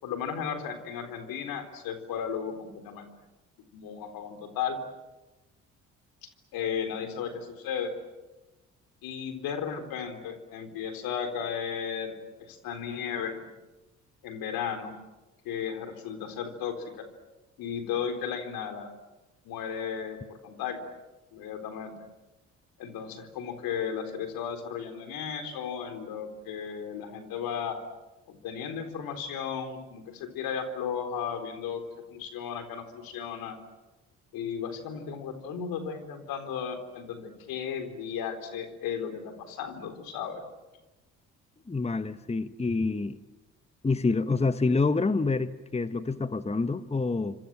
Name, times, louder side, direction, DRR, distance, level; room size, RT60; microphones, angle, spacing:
voice 1, 0.0-3.0 3.7-4.8 6.5-7.9 9.0-12.1 12.4-13.3 14.2-14.9 15.4-17.0 17.6-18.9 19.4-20.8 21.3-21.9 22.8-27.8 28.3-33.6 34.3-40.4, left 7 dB, 70° left, 4.0 m, -35 dB
voice 2, 41.7-43.2 43.8-47.3, left 3 dB, 15° left, 1.3 m, -27 dB
29.0 x 25.5 x 7.6 m
hypercardioid pair, 50°, 36 cm